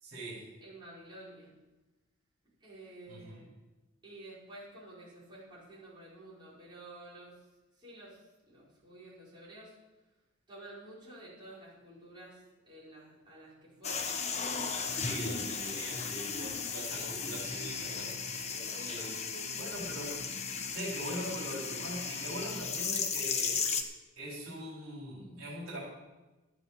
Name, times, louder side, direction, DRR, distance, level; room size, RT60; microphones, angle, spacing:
voice 1, 0.0-0.5 3.1-3.4 15.0-18.2 18.9-19.1 19.6-20.2 20.7-23.8 24.2-25.8, right 1 dB, 70° right, -4 dB, 4.1 m, -41 dB
voice 2, 0.6-1.5 2.6-3.5 4.0-7.5 7.8-9.7 10.5-14.2 16.9-17.8 18.7-19.6, right 1 dB, 20° right, -8 dB, 5.3 m, -51 dB
sound 1, 13.8-23.8, left 5 dB, 30° left, 1.1 m, -35 dB
12.5 x 8.2 x 6.9 m, 1.1 s
head